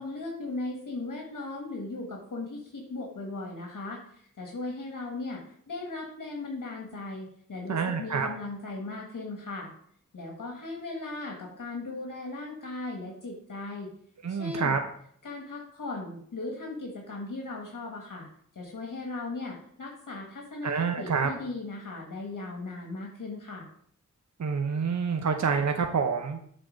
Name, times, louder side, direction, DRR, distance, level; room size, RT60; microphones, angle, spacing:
voice 1, 0.0-9.7 10.1-13.9 14.3-14.8 15.2-18.3 18.5-23.7, left 3 dB, 75° left, 0 dB, 1.6 m, -37 dB
voice 2, 7.7-8.3 14.2-14.8 20.6-21.3 24.4-26.4, right 5 dB, 60° right, 5 dB, 0.8 m, -27 dB
7.7 x 4.1 x 5.1 m, 0.63 s
cardioid pair, 45°, 32 cm